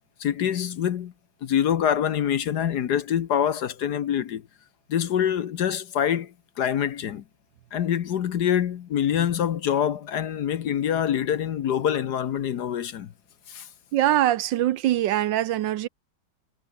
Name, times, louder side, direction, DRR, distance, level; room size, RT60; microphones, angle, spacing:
voice 1, 0.2-1.1 1.4-4.5 4.9-7.2 7.7-13.1 13.5-13.7, left 9 dB, 60° left, 1.4 m, -25 dB
voice 2, 13.9-15.9, right 13 dB, 70° right, 1.3 m, -23 dB
omnidirectional pair, 2.2 m